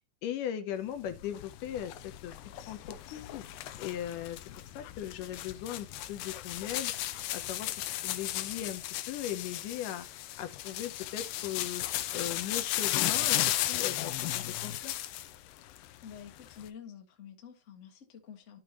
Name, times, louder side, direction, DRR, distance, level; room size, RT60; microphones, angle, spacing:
voice 1, 0.2-2.3 2.7-3.5 3.8-4.4 4.8-6.9 7.3-10.1 10.4-11.8 12.1-14.9, left 10 dB, 75° left, 2.3 m, -38 dB
sound 1, 1.1-15.4 15.7-16.7, left 14 dB, 90° left, 2.4 m, -35 dB
voice 2, 16.0-18.6, left 8 dB, 35° left, 1.2 m, -48 dB
13.5 x 5.3 x 3.0 m
omnidirectional pair, 4.0 m